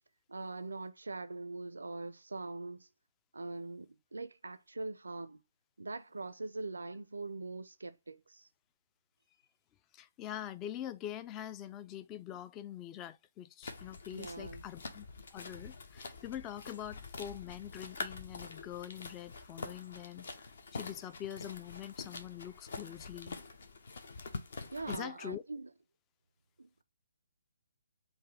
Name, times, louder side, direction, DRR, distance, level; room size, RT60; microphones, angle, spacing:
voice 1, 0.3-2.9 3.3-5.4 5.8-8.5 14.1-14.7 24.7-25.7 26.6-26.8, right 3 dB, 70° right, 0.4 m, -42 dB
voice 2, 9.9-15.1 15.3-20.3 20.7-23.4 24.9-25.4, left 11 dB, 20° left, 0.3 m, -44 dB
sound 1, 13.6-25.0, left 3 dB, 55° left, 0.8 m, -46 dB
4.0 x 2.6 x 4.3 m
figure-of-eight pair, 135°, 0 cm